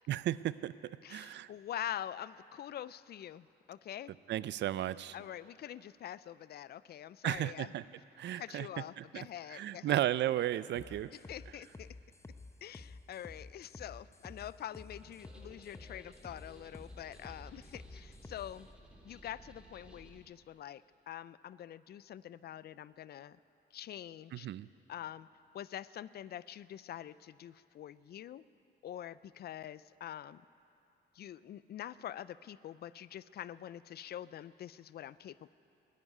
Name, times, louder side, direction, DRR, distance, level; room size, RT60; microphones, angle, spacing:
voice 1, 0.1-1.5 4.3-5.2 7.2-7.8 8.2-8.7 9.0-9.3 9.5-11.1 24.3-24.7, right 13 dB, 65° right, 18 dB, 0.4 m, -34 dB
voice 2, 1.0-4.1 5.1-7.7 8.3-10.0 11.1-11.9 12.6-18.7 19.0-23.4 23.7-24.5 24.9-25.3 25.5-28.4 28.8-30.4 31.1-35.5, left 11 dB, 55° left, 18 dB, 0.4 m, -45 dB
sound 1, 10.7-18.5, left 3 dB, 15° left, 0.8 m, -51 dB
sound 2, 15.0-20.2, right 1 dB, 5° right, 2.1 m, -57 dB
14.5 x 9.5 x 10.0 m, 2.8 s
cardioid pair, 90°, 20 cm